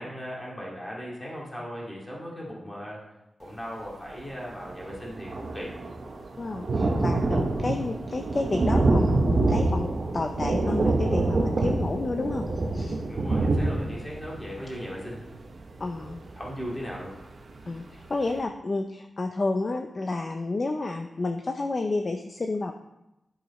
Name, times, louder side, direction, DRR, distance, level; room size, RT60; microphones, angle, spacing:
voice 1, 0.0-3.0 3.4-5.7 13.0-15.2 16.4-17.2, equal, 15° left, -4 dB, 2.1 m, -37 dB
Thunder, 4.2-4.3 4.5-17.1 17.6-17.7 18.0-18.1, right 2 dB, 50° right, 0.9 m, -26 dB
voice 2, 6.4-9.9 10.1-12.5 12.7-13.0 15.8-16.2 17.7-22.7, left 3 dB, 35° left, 5 dB, 0.4 m, -30 dB
11.0 x 4.9 x 4.1 m, 0.92 s
wide cardioid pair, 160°, 0 cm